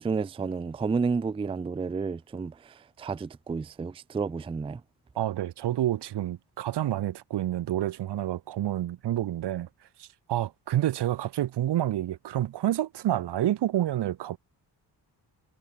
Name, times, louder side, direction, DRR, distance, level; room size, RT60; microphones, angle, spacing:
voice 1, 0.0-4.8, right 5 dB, 15° right, 0.3 m, -31 dB
voice 2, 5.2-9.7 10.0-14.4, right 12 dB, 80° right, 1.0 m, -28 dB
wide cardioid pair, 155°, 40 cm